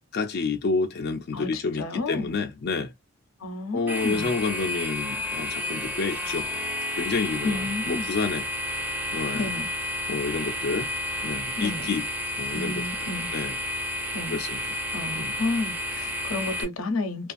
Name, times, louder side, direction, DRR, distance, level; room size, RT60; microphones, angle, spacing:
voice 1, 0.1-2.9 3.7-6.5 6.9-8.5 9.1-9.5 10.1-10.9 11.2-12.0 12.4-12.8 13.3-13.6 14.3-14.8 15.2-15.3, left 4 dB, 50° left, 0.4 m, -29 dB
voice 2, 1.3-2.3 3.4-4.3 7.4-8.1 9.3-9.7 11.6-11.9 12.5-13.3 14.1-14.4 14.9-17.3, left 2 dB, 85° left, 0.7 m, -31 dB
sound 1, 3.9-16.6, left 1 dB, 10° right, 0.8 m, -31 dB
2.5 x 2.4 x 2.4 m
head